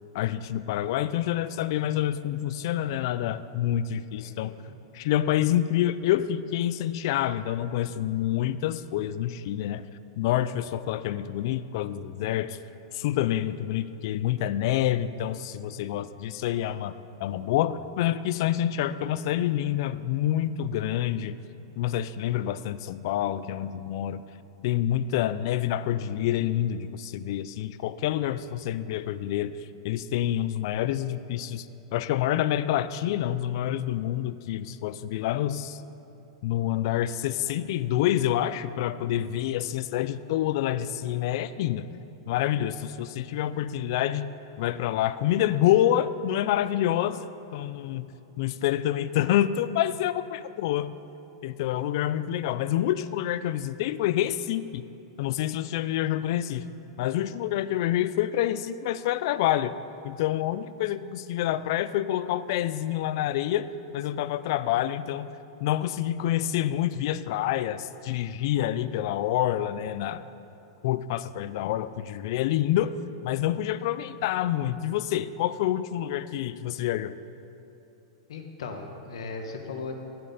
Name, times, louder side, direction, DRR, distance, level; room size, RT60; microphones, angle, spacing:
voice 1, 0.1-4.5 4.9-9.8 10.2-12.6 12.9-16.9 17.2-21.4 21.8-24.2 24.6-29.5 29.8-31.7 31.9-35.8 36.4-41.8 42.3-48.1 48.4-51.0 51.4-54.8 55.2-56.7 57.0-59.7 60.0-63.7 63.9-65.4 65.6-70.2 70.8-72.9 73.2-77.2, left 12 dB, 50° left, 14 dB, 0.3 m, -27 dB
voice 2, 4.2-4.7 78.3-79.9, left 4 dB, 80° left, 4 dB, 1.1 m, -38 dB
11.5 x 7.6 x 4.1 m, 2.8 s
supercardioid pair, 150°, 3 cm